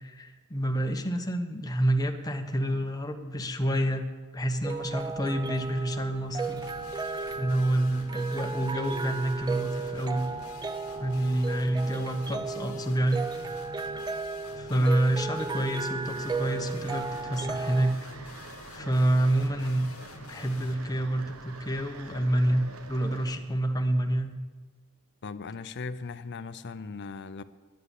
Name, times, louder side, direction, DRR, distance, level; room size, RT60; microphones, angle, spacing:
voice 1, 0.0-4.0 4.3-6.6 7.4-10.3 11.0-13.3 14.6-18.0 18.7-19.9 20.3-24.4, right 1 dB, 15° left, 1.0 m, -28 dB
sound 1, 4.4-17.9, right 4 dB, 20° right, 0.4 m, -35 dB
sound 2, 6.4-20.7, left 3 dB, 80° left, 1.2 m, -48 dB
sound 3, 16.1-23.4, right 3 dB, 80° right, 1.2 m, -47 dB
voice 2, 25.2-27.4, left 4 dB, 55° left, 0.6 m, -38 dB
10.5 x 9.6 x 8.2 m
head